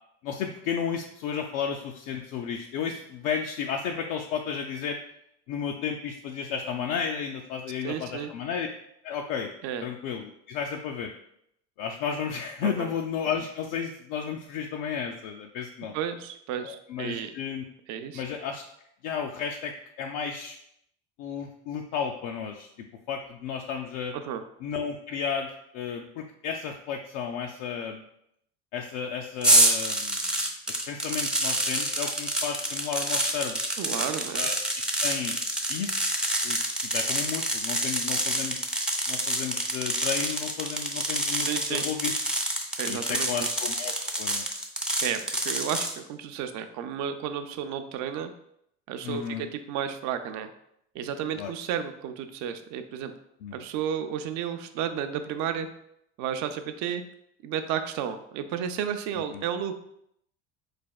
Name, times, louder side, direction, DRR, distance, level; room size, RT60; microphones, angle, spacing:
voice 1, 0.2-5.0 5.5-8.7 9.0-9.5 9.8-11.1 11.8-15.9 16.6-17.6 18.1-18.6 19.0-20.6 21.2-22.7 23.1-24.1 24.6-28.0 28.7-30.2 30.7-33.6 34.4-35.4 35.7-36.1 36.4-36.6 36.9-38.7 39.1-42.1 42.9-44.4 49.0-49.4 51.4-51.5 53.4-53.6 59.3-59.4, left 7 dB, 70° left, 2 dB, 0.4 m, -33 dB
voice 2, 7.8-8.3 9.6-9.9 12.6-12.9 15.9-17.3 17.9-18.2 24.1-24.4 33.8-34.5 41.3-41.8 42.8-43.6 45.0-48.3 48.9-50.5 50.9-53.1 53.5-55.7 56.2-57.0 57.4-59.7, right 8 dB, 60° right, 8 dB, 0.5 m, -32 dB
sound 1, 29.4-45.9, right 1 dB, 5° right, 0.5 m, -27 dB
4.0 x 3.4 x 2.2 m, 0.75 s
supercardioid pair, 95°, 33 cm